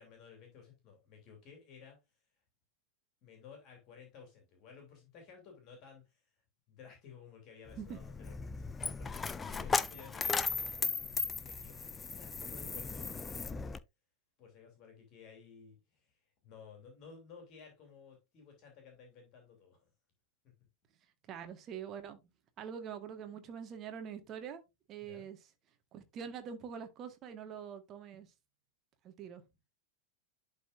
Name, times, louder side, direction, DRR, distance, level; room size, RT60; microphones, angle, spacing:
voice 1, 0.0-2.0 3.2-6.2 6.7-8.7 9.0-13.7 14.4-19.9 20.4-20.7 25.0-25.3, left 6 dB, 40° left, 2.9 m, -56 dB
Coin (dropping), 7.7-13.8, left 4 dB, 15° left, 0.5 m, -36 dB
voice 2, 21.3-22.2 22.6-24.6 24.9-25.4 25.9-28.3 29.0-29.4, right 7 dB, 30° right, 1.5 m, -44 dB
11.5 x 4.2 x 2.6 m
figure-of-eight pair, 90°, 0 cm